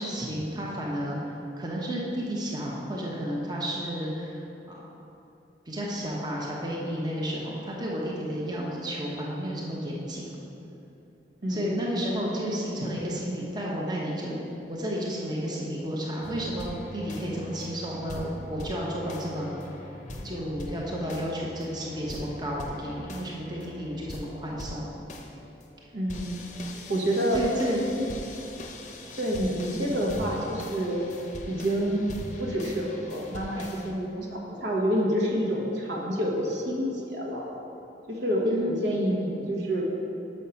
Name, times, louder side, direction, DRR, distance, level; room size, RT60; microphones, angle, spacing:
voice 1, 0.0-4.8 5.7-10.4 11.5-19.6 20.2-24.9 27.3-27.8 29.7-29.9 33.6-33.7 38.4-38.7, equal, 25° right, -4 dB, 0.8 m, -32 dB
voice 2, 11.4-11.8 25.9-26.4 26.9-27.5 28.0-28.1 29.1-31.0 31.5-32.1 32.4-37.5 38.1-39.8, equal, 75° right, -2 dB, 1.2 m, -28 dB
sound 1, 16.2-33.9, left 1 dB, 45° left, 0.6 m, -41 dB
6.3 x 5.5 x 5.7 m, 2.9 s
head